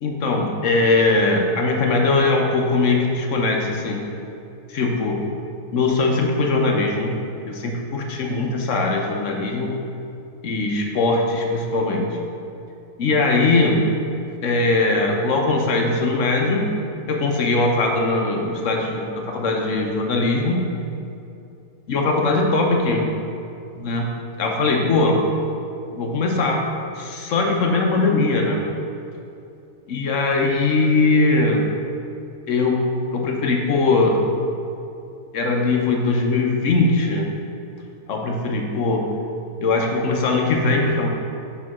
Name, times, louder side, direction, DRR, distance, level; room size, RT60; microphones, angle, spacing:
voice 1, 0.0-4.0 4.7-5.2 5.7-7.1 7.5-9.8 10.4-12.1 13.0-13.8 14.4-16.6 17.1-20.6 21.9-23.1 23.8-24.1 24.4-25.2 25.9-26.6 27.0-28.6 29.9-31.6 32.5-32.8 33.1-34.2 35.3-37.3 38.1-39.0 39.6-41.1, left 3 dB, 60° left, 1 dB, 1.0 m, -20 dB
6.5 x 3.8 x 5.9 m, 2.7 s
omnidirectional pair, 1.7 m